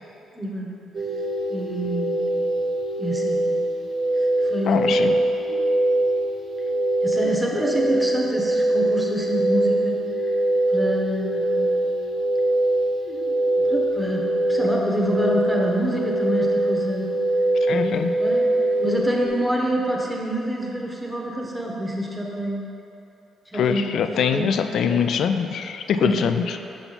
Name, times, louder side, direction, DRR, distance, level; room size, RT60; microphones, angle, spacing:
voice 1, 0.3-0.7 1.5-2.2 3.0-3.5 4.1-5.7 7.0-10.4 10.7-11.7 13.0-17.1 17.7-22.6 23.5-24.6 24.9-25.3 26.0-26.2, right 1 dB, 5° right, -2 dB, 1.0 m, -27 dB
sound 1, 0.9-19.3, right 1 dB, 55° right, 0.8 m, -23 dB
voice 2, 4.7-5.2 17.6-18.1 23.5-26.6, left 7 dB, 70° left, 8 dB, 0.3 m, -23 dB
5.9 x 5.7 x 4.1 m, 2.9 s
cardioid pair, 90°, 0 cm